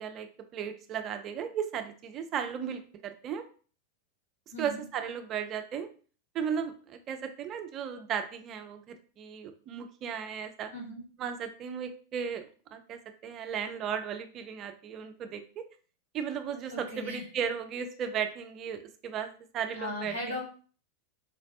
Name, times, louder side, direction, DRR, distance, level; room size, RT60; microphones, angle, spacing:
voice 1, 0.0-3.5 4.6-5.9 6.3-10.7 11.2-12.5 12.7-15.6 16.1-20.4, right 7 dB, 30° right, 7 dB, 0.4 m, -35 dB
voice 2, 4.5-4.8 10.7-11.0 16.7-17.2 19.7-20.4, left 1 dB, 75° left, -4 dB, 1.5 m, -37 dB
4.7 x 2.0 x 2.7 m, 0.40 s
figure-of-eight pair, 90°, 0 cm